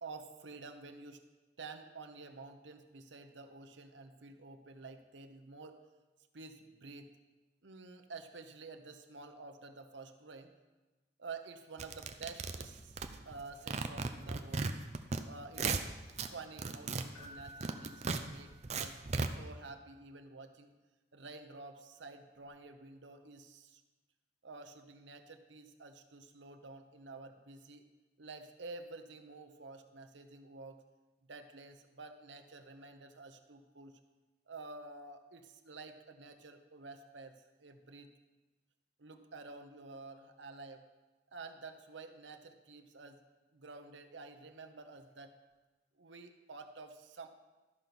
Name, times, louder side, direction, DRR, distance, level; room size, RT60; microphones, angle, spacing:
voice 1, 0.0-1.2 1.6-5.8 6.3-7.1 7.6-10.5 11.2-13.0 13.2-14.7 15.3-15.7 16.2-19.0 19.3-20.7 21.1-23.8 24.4-27.8 28.2-30.8 31.2-34.0 34.5-38.1 39.0-40.8 41.3-43.2 43.5-45.3 46.0-47.3, right 3 dB, 75° right, 6 dB, 0.9 m, -50 dB
sound 1, 11.8-13.4 13.7-15.2 15.5-16.3 16.6-19.3, right 4 dB, 35° right, 0.5 m, -36 dB
Keyboard (musical), 17.1-19.1 22.3-22.5, right 1 dB, 85° left, 3.8 m, -55 dB
13.5 x 5.3 x 6.0 m, 1.2 s
head